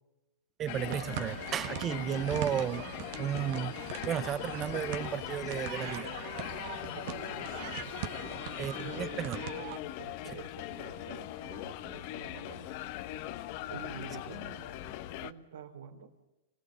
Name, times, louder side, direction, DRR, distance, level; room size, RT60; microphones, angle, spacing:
voice 1, 0.6-2.8 3.2-3.8 4.1-6.1 8.6-9.4, right 9 dB, 25° right, 0.7 m, -33 dB
sound 1, 0.7-15.3, left 14 dB, 50° left, 1.2 m, -40 dB
sound 2, 0.9-9.8, right 11 dB, 55° right, 1.6 m, -42 dB
sound 3, 3.3-5.9 7.3-8.8 10.7-12.0 13.7-15.0, left 6 dB, 80° left, 5.1 m, -58 dB
voice 2, 6.9-7.5 8.1-8.5 8.9-9.3 9.8-12.8 13.3-13.4 13.7-16.1, right 7 dB, 85° right, 3.1 m, -48 dB
28.0 x 18.0 x 7.6 m
hypercardioid pair, 135°, 0 cm